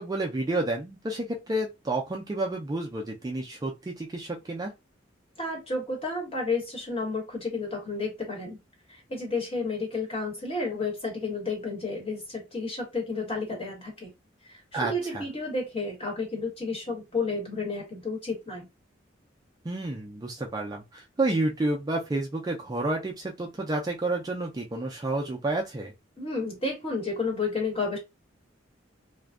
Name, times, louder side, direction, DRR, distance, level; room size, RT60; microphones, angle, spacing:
voice 1, 0.0-4.7 14.7-15.2 19.6-25.9, right 2 dB, 20° right, 0.3 m, -30 dB
voice 2, 5.4-8.6 8.9-14.1 14.4-18.7 26.2-28.0, left 3 dB, 30° left, 1.1 m, -31 dB
2.5 x 2.2 x 2.3 m
head